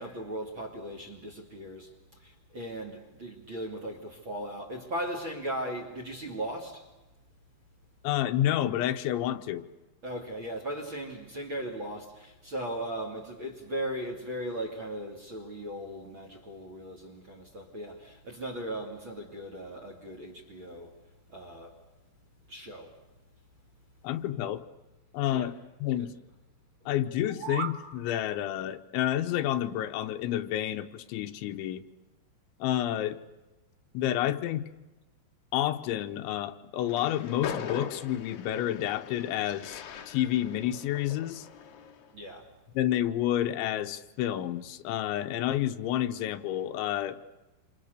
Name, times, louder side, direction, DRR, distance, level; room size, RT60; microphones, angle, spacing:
voice 1, 0.0-1.9 2.2-6.9 10.0-20.9 21.3-21.8 22.5-22.9 25.3-25.5 42.1-42.5, right 1 dB, 35° right, 2.5 m, -38 dB
voice 2, 8.0-9.7 24.0-24.6 25.1-25.6 25.8-26.1 26.9-31.8 32.6-33.2 34.0-34.6 35.5-41.5 42.8-47.2, left 12 dB, 80° left, 3.4 m, -29 dB
sound 1, 27.1-27.8, right 8 dB, 60° right, 3.6 m, -36 dB
Train, 36.8-42.1, left 7 dB, 60° left, 2.1 m, -41 dB
27.5 x 27.5 x 6.8 m
omnidirectional pair, 5.3 m